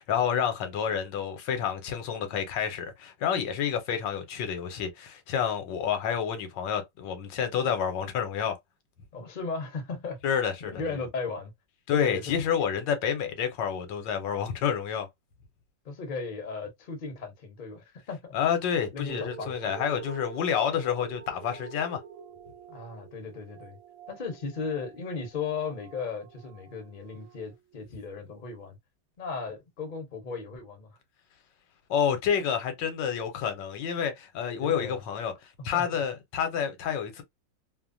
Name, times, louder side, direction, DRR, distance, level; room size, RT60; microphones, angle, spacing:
voice 1, 0.0-8.6 10.2-10.8 11.9-15.1 18.3-22.0 31.9-37.2, left 8 dB, 75° left, 1.3 m, -29 dB
voice 2, 9.1-10.2 10.6-11.5 11.9-12.4 15.8-18.4 18.9-19.7 22.7-23.8 24.1-28.8 29.2-30.9 34.6-35.0 35.7-35.8, left 4 dB, 40° left, 0.7 m, -36 dB
sound 1, 19.1-28.0 28.6-28.7, right 7 dB, 85° right, 0.7 m, -47 dB
3.1 x 2.1 x 2.5 m
omnidirectional pair, 2.0 m